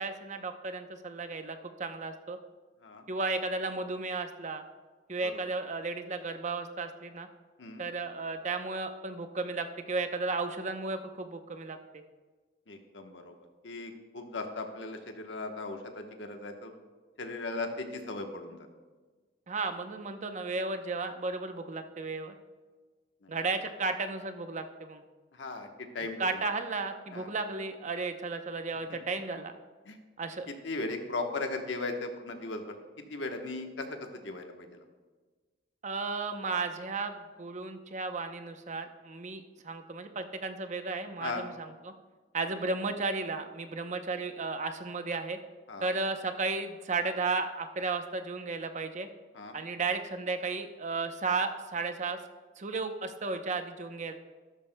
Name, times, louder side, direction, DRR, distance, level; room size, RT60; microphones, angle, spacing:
voice 1, 0.0-2.4 3.1-4.6 5.1-7.3 7.8-12.0 19.5-22.3 23.3-25.0 26.2-29.5 30.2-30.5 35.8-41.9 42.3-45.4 45.8-49.1 49.5-52.2 52.6-54.1, right 3 dB, 40° right, 7 dB, 0.7 m, -34 dB
voice 2, 12.7-13.3 13.6-16.7 17.2-18.7 23.2-23.4 25.3-26.2 27.1-27.3 29.8-30.0 30.6-32.7 33.1-34.8 41.2-41.4 45.7-45.9 49.3-49.5, left 3 dB, 90° left, 4 dB, 1.1 m, -37 dB
13.0 x 12.0 x 2.2 m, 1.4 s
head